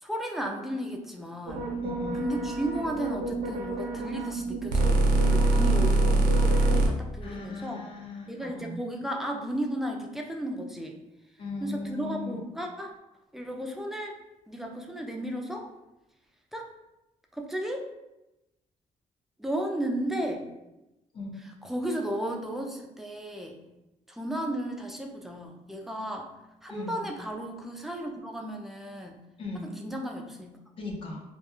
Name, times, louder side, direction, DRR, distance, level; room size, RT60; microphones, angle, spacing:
voice 1, 0.0-1.7 2.2-7.8 8.3-11.0 11.6-12.9 13.3-14.2 14.5-15.7 16.5-16.7 17.3-17.8 19.4-20.5 21.6-23.6 24.1-26.3 26.6-29.2 29.6-30.6, right 1 dB, ahead, 2 dB, 0.3 m, -34 dB
sound 1, 1.5-6.9, right 2 dB, 80° right, 0.5 m, -25 dB
voice 2, 1.8-2.2 7.2-8.8 11.4-12.5 21.1-21.4 26.7-27.0 29.4-29.7 30.8-31.2, left 3 dB, 40° left, -2 dB, 0.6 m, -37 dB
2.3 x 2.2 x 2.9 m, 0.95 s
cardioid pair, 130°, 14 cm